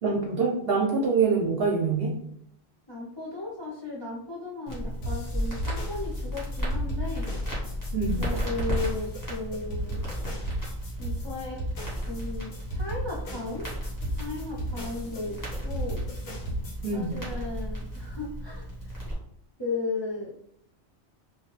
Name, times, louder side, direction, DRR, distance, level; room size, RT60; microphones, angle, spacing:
voice 1, 0.0-2.1 7.9-8.2 16.8-17.1, right 4 dB, 60° right, 0 dB, 0.6 m, -25 dB
voice 2, 2.9-7.3 8.2-10.0 11.0-11.6 12.1-13.7 14.1-15.3 15.6-16.1 16.9-18.6 19.6-20.3, left 3 dB, 35° left, -3 dB, 0.4 m, -35 dB
Crackle, 4.7-19.1, equal, 15° left, 1.0 m, -34 dB
sound 1, 5.0-16.9, equal, 85° left, 1.3 m, -35 dB
3.0 x 2.3 x 3.0 m, 0.68 s
omnidirectional pair, 1.4 m